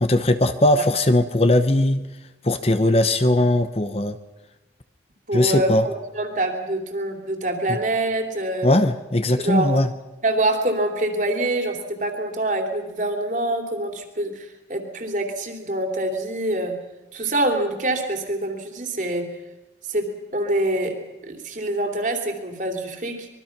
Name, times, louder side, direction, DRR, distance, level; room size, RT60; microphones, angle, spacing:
voice 1, 0.0-2.0 2.4-4.2 5.3-5.8 7.7-7.8 8.6-9.9, left 1 dB, 30° left, 10 dB, 0.9 m, -19 dB
voice 2, 5.3-8.7 9.4-9.7 10.2-16.8 17.1-19.3 19.9-23.3, right 1 dB, 40° right, 4 dB, 3.1 m, -25 dB
25.0 x 22.5 x 6.0 m, 1.0 s
head